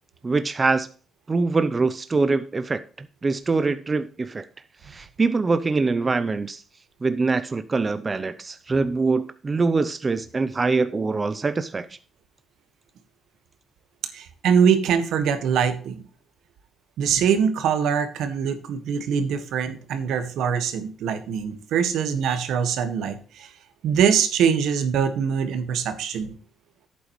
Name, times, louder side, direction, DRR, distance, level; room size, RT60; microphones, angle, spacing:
voice 1, 0.2-0.9 1.3-4.4 4.9-6.6 7.0-11.9, right 3 dB, 30° right, 0.6 m, -24 dB
voice 2, 14.1-16.0 17.0-23.5 23.8-26.3, right 7 dB, 80° right, 1.5 m, -23 dB
11.5 x 8.5 x 3.1 m
cardioid pair, 90°, 0 cm